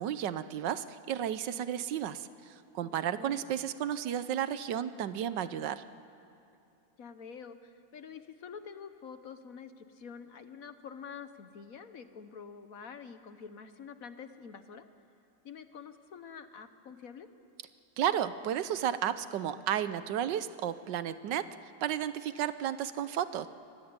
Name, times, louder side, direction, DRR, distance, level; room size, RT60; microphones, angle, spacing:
voice 1, 0.0-5.8 18.0-23.5, right 10 dB, 75° right, 13 dB, 1.3 m, -33 dB
voice 2, 2.8-3.4 7.0-14.9 15.4-17.3, left 6 dB, 55° left, 10 dB, 1.2 m, -47 dB
24.5 x 18.5 x 9.6 m, 2.7 s
omnidirectional pair, 2.0 m